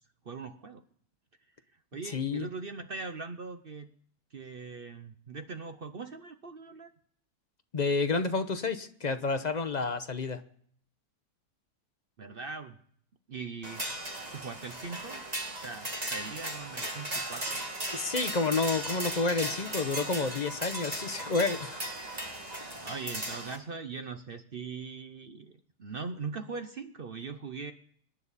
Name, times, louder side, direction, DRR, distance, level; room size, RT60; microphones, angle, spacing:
voice 1, 0.2-0.8 1.9-3.9 4.3-6.9 12.2-12.8 13.3-13.9 14.3-15.2 15.6-17.6 22.8-27.7, right 4 dB, 55° right, 8 dB, 0.6 m, -41 dB
voice 2, 2.1-2.5 7.7-10.4 17.9-21.8, left 4 dB, 40° left, 9 dB, 0.6 m, -30 dB
sound 1, 13.6-23.6, right 1 dB, 25° right, 2.3 m, -37 dB
25.0 x 10.5 x 4.1 m, 0.62 s
omnidirectional pair, 1.8 m